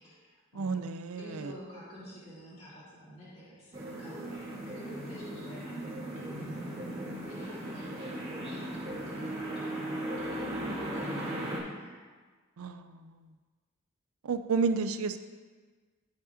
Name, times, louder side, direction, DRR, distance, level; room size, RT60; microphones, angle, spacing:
voice 1, 0.0-0.8 1.1-6.8 7.2-12.1, equal, 30° left, -8 dB, 1.9 m, -49 dB
voice 2, 0.5-1.5 12.6-13.3 14.2-15.2, right 4 dB, 80° right, 10 dB, 0.5 m, -31 dB
sound 1, 3.7-11.6, right 1 dB, 30° right, 1.6 m, -37 dB
12.5 x 4.9 x 2.8 m, 1.4 s
head